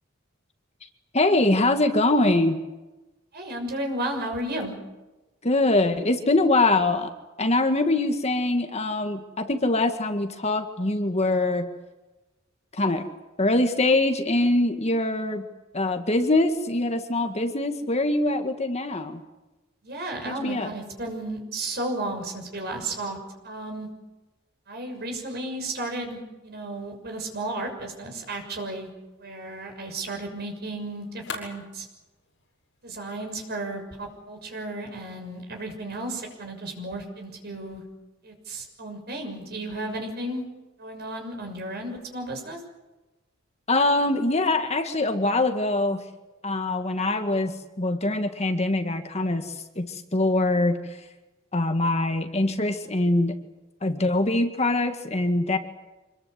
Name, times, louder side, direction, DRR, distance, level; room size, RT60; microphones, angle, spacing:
voice 1, 1.1-2.6 5.4-7.1 7.4-11.7 12.7-13.1 13.4-15.5 15.7-19.2 20.3-20.7 43.7-46.0 46.4-51.0 51.5-53.4 53.8-55.6, left 2 dB, 30° left, 6 dB, 1.9 m, -23 dB
voice 2, 3.3-4.7 19.8-23.2 23.4-23.9 24.7-28.9 29.2-31.9 32.8-37.8 38.2-40.4 40.8-42.6, right 1 dB, 50° right, 3 dB, 6.5 m, -33 dB
sound 1, 28.9-34.8, left 4 dB, 60° left, 7.8 m, -46 dB
26.5 x 21.5 x 8.3 m, 1.1 s
head